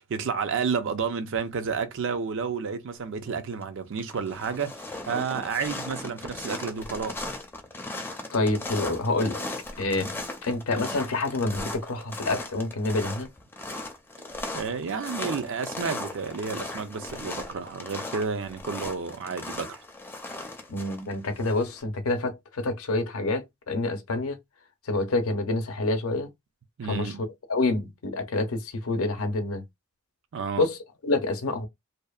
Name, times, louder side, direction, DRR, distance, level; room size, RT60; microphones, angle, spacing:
voice 1, 0.0-7.2 14.5-19.8 26.8-27.3 30.3-30.7, right 5 dB, 60° right, 0.4 m, -31 dB
sound 1, 3.3-3.6 3.9-21.8, left 2 dB, 10° left, 0.4 m, -37 dB
voice 2, 8.3-9.5 9.8-10.1 10.4-13.3 20.7-24.4 24.9-26.3 26.8-29.6 30.6-31.7, left 2 dB, 75° left, 0.6 m, -27 dB
2.7 x 2.0 x 2.3 m
head